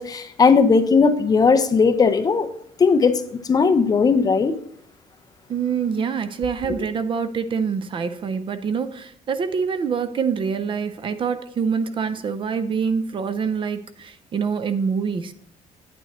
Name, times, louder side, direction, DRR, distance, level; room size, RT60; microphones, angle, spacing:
voice 1, 0.0-2.5 2.8-3.2 3.5-4.5, left 5 dB, 25° left, 0.5 m, -17 dB
voice 2, 5.5-15.3, right 6 dB, 35° right, 0.4 m, -25 dB
9.0 x 9.0 x 3.0 m
cardioid pair, 165°, 15 cm